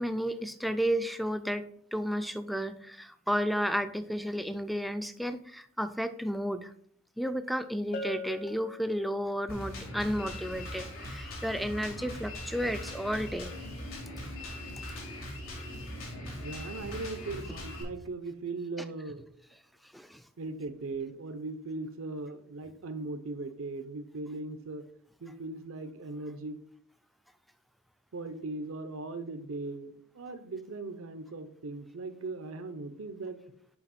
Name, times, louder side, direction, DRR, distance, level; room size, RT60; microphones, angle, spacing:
voice 1, 0.0-6.7 7.2-13.6 19.9-20.2, equal, ahead, 11 dB, 0.3 m, -32 dB
Bell, 7.9-9.6, left 2 dB, 40° left, 0.7 m, -41 dB
Drum kit, 9.5-17.8, left 1 dB, 85° left, 2.8 m, -40 dB
voice 2, 16.4-19.2 20.4-24.8 25.2-26.6 28.1-33.4, right 3 dB, 75° right, 10 dB, 0.6 m, -39 dB
7.0 x 5.3 x 4.2 m, 0.65 s
head